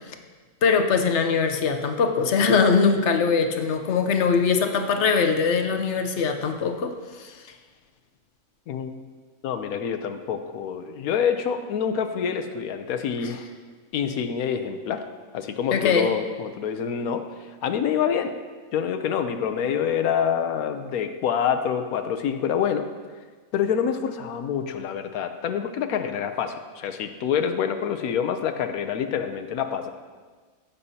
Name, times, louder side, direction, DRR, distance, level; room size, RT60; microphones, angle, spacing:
voice 1, 0.6-7.4 13.2-13.3 15.7-16.1, left 5 dB, 60° left, 6 dB, 1.0 m, -22 dB
voice 2, 9.4-13.4 13.9-15.0 15.3-17.3 17.6-18.4 18.7-22.9 23.5-29.9, left 7 dB, 90° left, 7 dB, 1.1 m, -26 dB
15.5 x 6.9 x 2.8 m, 1.4 s
omnidirectional pair, 1.5 m